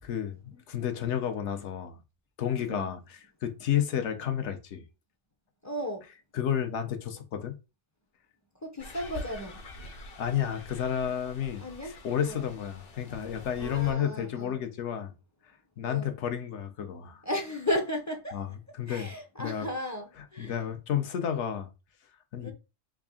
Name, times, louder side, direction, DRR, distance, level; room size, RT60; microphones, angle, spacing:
voice 1, 0.0-2.0 2.4-4.8 6.3-7.6 10.2-15.1 15.8-17.2 18.3-19.1 19.4-19.7 20.4-21.7 22.3-22.5, left 9 dB, 80° left, 1.0 m, -31 dB
voice 2, 2.6-2.9 5.6-6.0 8.6-9.6 11.6-12.4 13.6-14.6 15.8-16.2 17.2-18.4 18.9-20.6 22.4-22.5, left 1 dB, 25° left, 0.4 m, -35 dB
sound 1, 8.8-13.9, left 2 dB, 55° left, 0.9 m, -45 dB
3.5 x 2.5 x 3.6 m
omnidirectional pair, 1.2 m